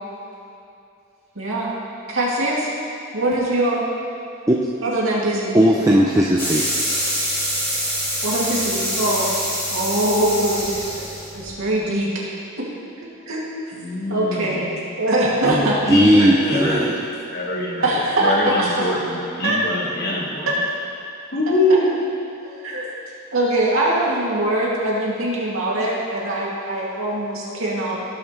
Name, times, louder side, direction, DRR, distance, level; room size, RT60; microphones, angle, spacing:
voice 1, 1.4-1.8 2.1-2.7 3.1-3.8 4.8-5.6 8.2-9.3 9.7-10.8 11.3-12.1 13.3-13.4 13.7-13.8 14.1-15.8 16.2-16.4 16.7-16.9 17.8-18.9 19.4-19.6 22.4-22.9 23.3-28.0, right 1 dB, 75° right, -5 dB, 2.4 m, -22 dB
voice 2, 5.5-6.7 15.4-17.0, equal, 15° right, -3 dB, 0.5 m, -17 dB
sound 1, 6.4-11.5, equal, 10° left, 2.1 m, -25 dB
voice 3, 13.7-14.6 15.9-16.9 17.3-17.9 18.2-20.6 21.3-22.0, left 1 dB, 45° left, -2 dB, 1.6 m, -23 dB
18.0 x 7.1 x 3.2 m, 2.6 s
head